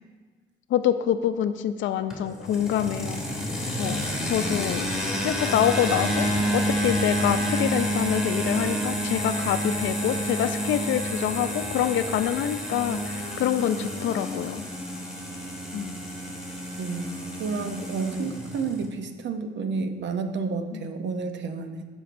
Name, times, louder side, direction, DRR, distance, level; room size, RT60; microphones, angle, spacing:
voice 1, 0.7-3.2 3.8-4.8 5.2-6.3 6.5-14.7 15.7-16.0 20.7-20.8, left 10 dB, 70° left, 11 dB, 0.5 m, -26 dB
sound 1, 2.1-18.9, equal, ahead, 2.3 m, -29 dB
voice 2, 16.8-21.9, right 4 dB, 65° right, 7 dB, 0.7 m, -30 dB
9.6 x 6.3 x 2.6 m, 1.4 s
cardioid pair, 90°, 20 cm